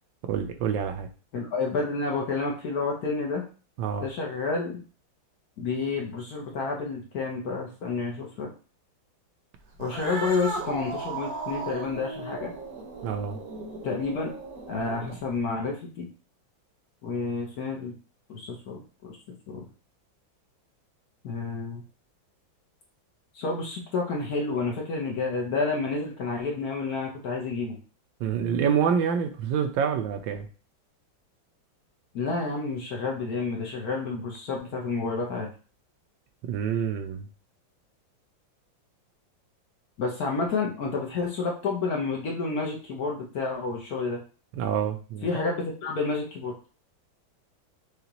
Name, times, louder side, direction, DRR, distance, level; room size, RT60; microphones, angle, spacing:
voice 1, 0.2-1.1 3.8-4.1 13.0-13.4 28.2-30.5 36.5-37.3 44.6-45.4, right 7 dB, 75° right, 7 dB, 1.3 m, -27 dB
voice 2, 1.3-3.4 4.0-4.8 5.6-8.5 9.8-12.5 13.8-14.3 14.7-16.1 17.0-18.0 18.3-19.2 19.5-19.7 21.2-21.8 23.3-27.8 32.1-35.5 40.0-44.2 45.2-46.5, left 4 dB, 60° left, 0 dB, 1.2 m, -30 dB
Cat, 9.7-15.4, right 3 dB, 60° right, 1.1 m, -37 dB
6.6 x 2.3 x 2.9 m, 0.36 s
omnidirectional pair, 2.2 m